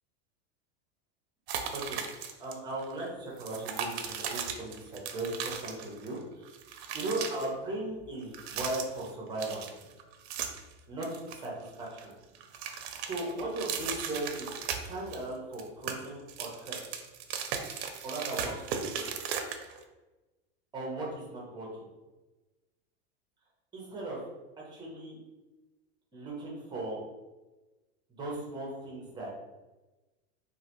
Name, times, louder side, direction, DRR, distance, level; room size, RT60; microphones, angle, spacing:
sound 1, 1.5-2.5 2.8-2.9 3.4-6.2 6.4-7.5 8.2-9.1 9.4-10.7 11.0-12.0 12.3-15.2 15.5-19.8, right 7 dB, 65° right, 0.5 m, -37 dB
voice 1, 1.7-6.4 6.9-9.6 10.9-12.1 12.5-12.6 13.1-14.5 14.8-16.8 18.0-19.1 20.7-21.9 23.7-24.2 24.6-25.2 26.1-27.0 28.2-29.3, right 2 dB, 10° right, -3 dB, 0.6 m, -37 dB
3.1 x 2.5 x 2.9 m, 1.1 s
supercardioid pair, 160°, 36 cm